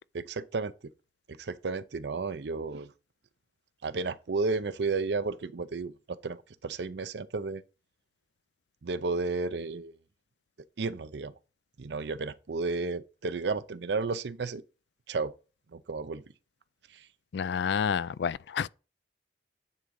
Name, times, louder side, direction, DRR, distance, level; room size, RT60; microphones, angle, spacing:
voice 1, 0.1-0.7 1.3-2.9 3.8-7.6 8.8-9.9 10.8-11.3 11.8-14.6 15.1-15.3 15.7-16.2 16.9-17.1, right 4 dB, 70° right, 0.6 m, -32 dB
voice 2, 17.3-18.7, left 7 dB, 70° left, 0.3 m, -29 dB
9.8 x 3.8 x 5.3 m
head